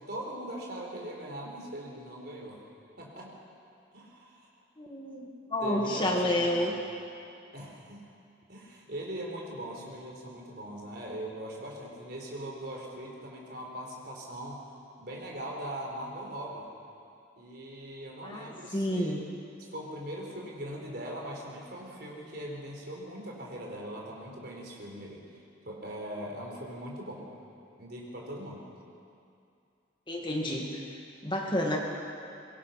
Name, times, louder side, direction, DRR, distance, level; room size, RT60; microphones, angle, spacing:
voice 1, 0.0-2.6 3.0-3.3 3.9-4.5 5.6-6.8 7.5-8.0 8.5-14.6 15.0-16.7 17.4-19.2 19.6-25.2 25.6-27.3 27.8-28.6, right 1 dB, 55° right, -1 dB, 4.3 m, -40 dB
voice 2, 4.8-6.7 18.2-19.2 30.1-30.8 31.2-31.8, left 1 dB, 25° left, 0 dB, 2.1 m, -30 dB
23.5 x 22.0 x 6.0 m, 2.5 s
head